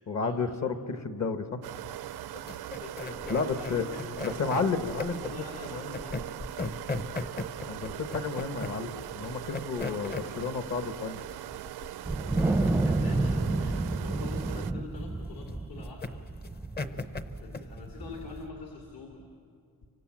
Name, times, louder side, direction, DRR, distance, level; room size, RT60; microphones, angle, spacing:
voice 1, 0.1-1.6 3.3-3.8 4.2-5.2 5.6-5.9 7.6-11.2, left 4 dB, 45° left, 9 dB, 1.3 m, -31 dB
sound 1, 1.6-14.7, right 13 dB, 80° right, 0.6 m, -40 dB
sound 2, 2.3-18.5, left 3 dB, 25° left, 0.8 m, -39 dB
voice 2, 2.7-4.5 5.1-6.3 7.1-7.4 10.1-10.3 12.5-16.2 16.7-19.2, left 4 dB, 65° left, 1 dB, 2.9 m, -46 dB
Wind, 12.1-18.6, right 2 dB, 5° right, 0.5 m, -30 dB
29.5 x 25.0 x 7.4 m, 2.4 s
wide cardioid pair, 175°, 38 cm